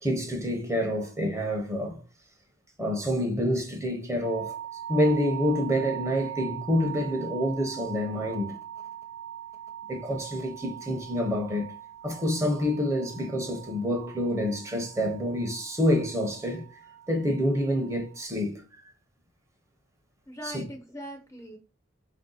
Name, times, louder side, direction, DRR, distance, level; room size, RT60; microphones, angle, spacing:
voice 1, 0.0-2.0 2.8-4.6 4.9-8.6 9.9-11.7 12.0-16.7 17.1-18.9 20.4-20.6, equal, 15° right, 0.8 m, -27 dB
sound 1, 4.2-18.2, right 10 dB, 70° right, 0.8 m, -41 dB
voice 2, 20.3-21.6, equal, 15° left, 0.5 m, -40 dB
4.4 x 2.7 x 3.8 m
head